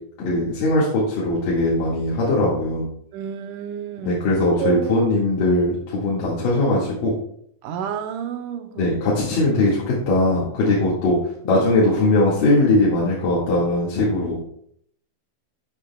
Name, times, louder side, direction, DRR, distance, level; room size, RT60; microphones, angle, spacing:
voice 1, 0.2-2.8 4.0-7.1 8.8-11.2 11.4-14.4, left 2 dB, 85° left, 3.7 m, -20 dB
voice 2, 3.1-4.2 4.6-5.1 7.6-8.9, right 9 dB, 80° right, 2.4 m, -29 dB
12.5 x 9.9 x 2.3 m
omnidirectional pair, 3.7 m